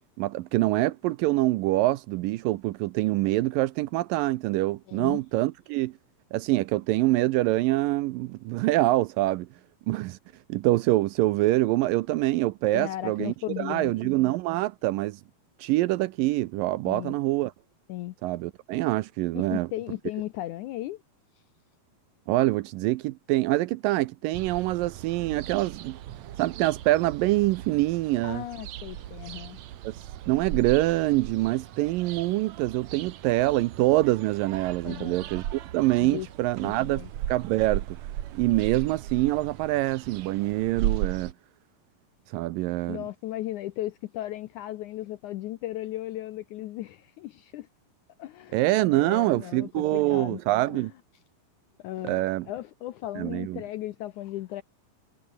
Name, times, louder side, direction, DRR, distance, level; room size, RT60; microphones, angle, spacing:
voice 1, 0.2-5.9 6.3-9.5 9.9-10.2 10.5-15.2 15.6-17.5 18.2-19.7 22.3-26.0 26.4-28.4 29.8-29.9 30.3-38.0 38.3-41.3 42.3-43.0 48.5-50.9 52.0-52.5 53.2-53.6, right 18 dB, 80° right, 2.1 m, -25 dB
voice 2, 4.9-5.2 12.7-14.1 16.9-17.1 17.9-18.1 19.3-21.0 28.2-29.6 34.8-35.2 36.0-36.3 36.6-37.1 42.9-47.7 48.2-50.4 50.7-50.9 51.8-54.6, left 14 dB, 75° left, 1.8 m, -36 dB
sound 1, 24.3-41.3, right 12 dB, 65° right, 2.0 m, -37 dB
omnidirectional pair, 4.3 m